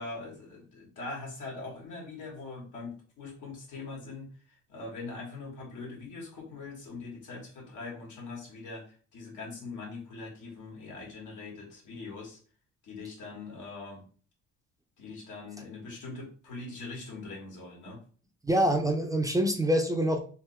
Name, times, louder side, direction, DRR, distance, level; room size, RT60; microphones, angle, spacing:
voice 1, 0.0-12.4 12.8-14.1 15.0-18.0, left 3 dB, 80° left, -2 dB, 1.6 m, -42 dB
voice 2, 18.4-20.2, right 1 dB, 10° right, 3 dB, 0.5 m, -25 dB
3.5 x 2.8 x 3.2 m, 0.41 s
cardioid pair, 90°, 30 cm